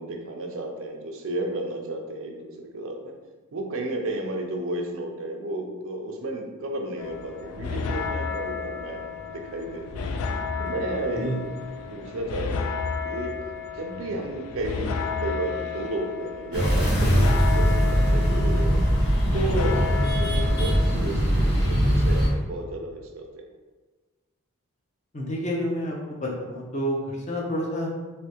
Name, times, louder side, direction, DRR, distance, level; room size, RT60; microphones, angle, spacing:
voice 1, 0.0-3.1 3.5-10.1 10.6-11.4 11.9-13.3 13.7-18.8 19.3-23.4, right 1 dB, 65° right, 2 dB, 0.5 m, -33 dB
sound 1, 7.0-21.0, left 5 dB, 75° left, 0.3 m, -32 dB
sound 2, 16.5-22.3, equal, 50° left, 1.1 m, -21 dB
voice 2, 25.1-27.9, equal, 30° left, -2 dB, 0.6 m, -29 dB
3.3 x 2.7 x 2.9 m, 1.3 s
head